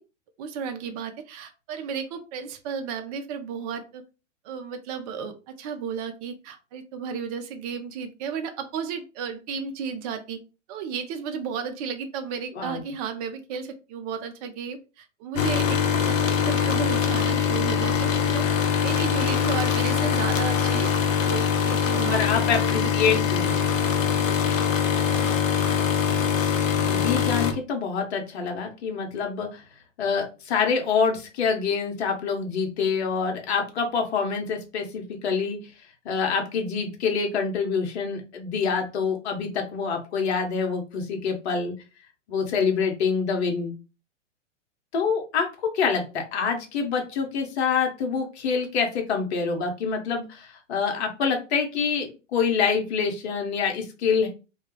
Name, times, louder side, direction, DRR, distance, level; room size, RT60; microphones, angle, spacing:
voice 1, 0.4-4.0 4.4-10.4 10.7-18.4 18.8-20.9 21.2-22.2 22.5-23.2 25.2-25.3, right 6 dB, 30° right, 7 dB, 0.4 m, -33 dB
sound 1, 15.4-27.5, left 7 dB, 90° left, 0.6 m, -23 dB
voice 2, 22.1-23.5 26.8-29.6 30.0-35.6 36.0-41.7 42.3-43.7 44.9-45.5 45.7-54.3, left 5 dB, 55° left, 3 dB, 1.0 m, -26 dB
2.3 x 2.2 x 3.1 m, 0.31 s
hypercardioid pair, 115°, 38 cm